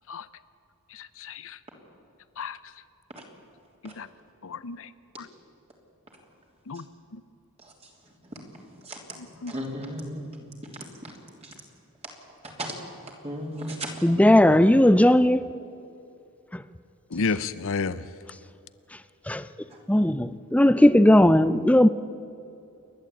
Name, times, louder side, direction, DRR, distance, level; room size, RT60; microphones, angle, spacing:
voice 1, 0.9-1.6 2.4-2.6 3.8-4.1 4.4-4.9 5.2-5.3 6.7-6.8 7.1-7.2 9.4-9.5 17.1-18.0, left 4 dB, 65° left, 0.7 m, -31 dB
voice 2, 9.5-10.4 12.6-12.7 13.2-13.9, equal, 30° right, 3.2 m, -34 dB
voice 3, 14.0-15.4 16.5-16.6 19.3-19.4 19.9-21.9, left 1 dB, 5° left, 0.5 m, -17 dB
28.5 x 11.0 x 8.5 m
head